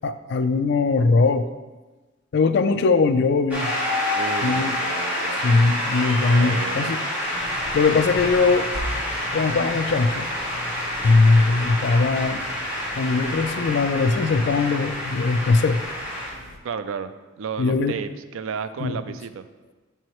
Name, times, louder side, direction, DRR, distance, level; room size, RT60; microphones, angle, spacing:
voice 1, 0.0-1.5 2.3-3.7 4.4-4.8 5.4-7.0 7.7-8.7 9.3-10.3 11.0-12.4 13.0-15.8 17.6-17.9 18.8-19.0, left 3 dB, 55° left, 10 dB, 0.3 m, -20 dB
Shout / Cheering / Applause, 3.5-16.3, left 1 dB, 10° right, 1.6 m, -28 dB
voice 2, 4.1-5.6 6.3-7.0 16.6-17.1 17.4-19.5, right 6 dB, 70° right, 11 dB, 0.3 m, -33 dB
sound 1, 7.3-16.6, left 1 dB, 90° left, 0.7 m, -40 dB
7.0 x 4.6 x 3.0 m, 1.2 s
head